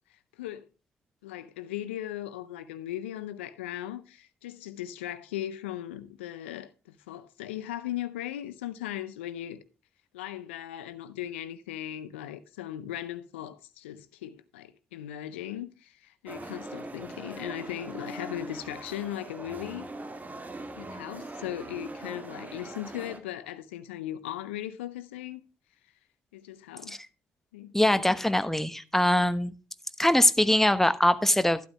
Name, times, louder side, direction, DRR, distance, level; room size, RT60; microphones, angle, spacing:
voice 1, 1.2-9.6 10.1-19.9 20.8-25.4 26.3-27.0 27.5-27.7, left 12 dB, 85° left, 0.6 m, -38 dB
sound 1, 16.3-23.2, right 2 dB, 25° right, 2.0 m, -41 dB
voice 2, 27.7-29.5 30.0-31.6, left 1 dB, 5° left, 1.0 m, -22 dB
12.0 x 10.0 x 2.2 m
hypercardioid pair, 45°, 6 cm